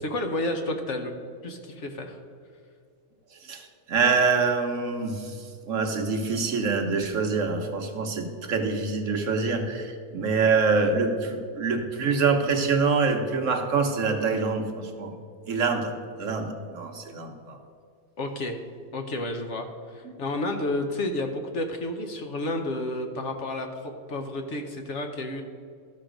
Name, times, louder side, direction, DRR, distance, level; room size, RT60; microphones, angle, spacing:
voice 1, 0.0-1.1 1.4-2.2 18.2-18.6 18.9-25.4, left 1 dB, 55° left, 4 dB, 1.0 m, -31 dB
voice 2, 3.4-15.1 15.5-15.9 16.2-17.6, right 4 dB, 60° right, 4 dB, 1.1 m, -25 dB
13.0 x 5.9 x 5.1 m, 2.3 s
omnidirectional pair, 1.6 m